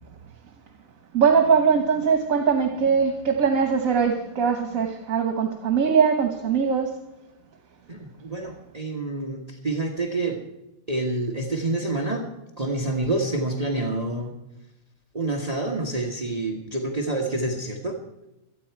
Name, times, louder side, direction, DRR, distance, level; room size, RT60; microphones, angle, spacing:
voice 1, 1.1-7.0, right 6 dB, 75° right, 5 dB, 1.7 m, -21 dB
voice 2, 7.9-10.4 10.9-14.4 15.1-18.0, right 2 dB, 30° right, 1 dB, 1.4 m, -28 dB
26.0 x 9.3 x 4.7 m, 0.95 s
omnidirectional pair, 1.5 m